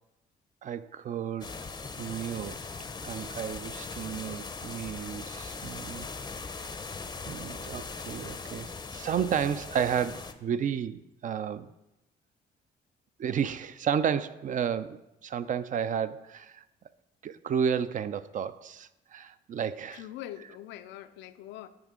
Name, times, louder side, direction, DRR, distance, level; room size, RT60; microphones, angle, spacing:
voice 1, 0.6-1.6 2.0-2.6 3.0-6.1 7.3-11.7 13.2-16.6 17.2-20.0, right 8 dB, 45° right, 14 dB, 0.4 m, -32 dB
sound 1, 1.4-10.3, left 4 dB, 25° left, 0.5 m, -40 dB
voice 2, 19.9-21.7, left 13 dB, 85° left, 11 dB, 0.4 m, -43 dB
10.0 x 3.6 x 3.7 m, 0.92 s
supercardioid pair, 70°, 18 cm